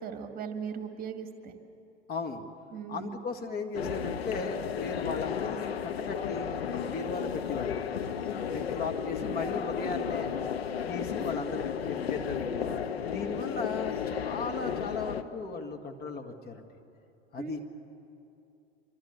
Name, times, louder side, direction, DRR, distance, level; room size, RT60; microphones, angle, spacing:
voice 1, 0.0-1.5 2.7-3.2 17.4-17.5, right 6 dB, 25° right, 6 dB, 2.1 m, -38 dB
voice 2, 2.1-2.4 2.9-7.8 8.7-10.3 10.9-12.7 13.1-16.6 17.3-17.6, left 4 dB, 30° left, 4 dB, 1.9 m, -36 dB
sound 1, 3.7-15.2, left 7 dB, 65° left, 1.3 m, -33 dB
27.0 x 25.0 x 8.3 m, 2.7 s
figure-of-eight pair, 85°, 33 cm